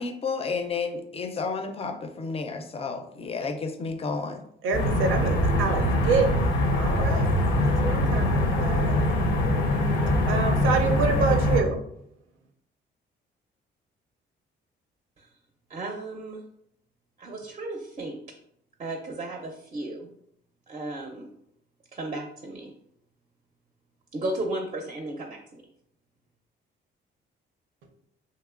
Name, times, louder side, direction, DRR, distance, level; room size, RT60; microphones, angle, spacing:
voice 1, 0.0-4.5, left 4 dB, 30° left, 6 dB, 0.4 m, -31 dB
voice 2, 4.6-7.3 7.7-9.0 10.3-11.8, right 5 dB, 85° right, 4 dB, 0.5 m, -27 dB
sound 1, 4.7-11.6, left 1 dB, 85° left, 0.6 m, -23 dB
voice 3, 15.7-16.4 17.2-18.2 18.8-20.1 20.7-21.3 21.9-22.7 24.1-25.6, right 2 dB, 30° right, 2 dB, 0.5 m, -34 dB
2.9 x 2.9 x 2.4 m, 0.73 s
cardioid pair, 90°, 20 cm